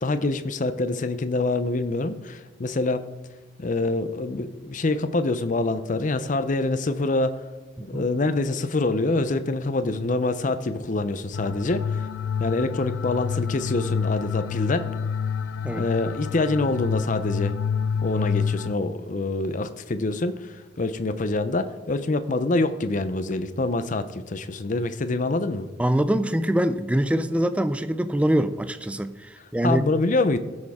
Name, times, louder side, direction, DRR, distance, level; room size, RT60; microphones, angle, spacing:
voice 1, 0.0-3.0 3.6-7.5 7.8-12.1 12.4-14.9 15.7-17.5 18.0-25.7 29.4-30.4, left 2 dB, 40° left, 11 dB, 0.6 m, -25 dB
sound 1, 11.3-18.8, left 6 dB, 85° left, 0.4 m, -28 dB
voice 2, 25.8-29.8, right 1 dB, 5° right, 12 dB, 0.4 m, -24 dB
16.0 x 6.4 x 3.6 m, 1.3 s
head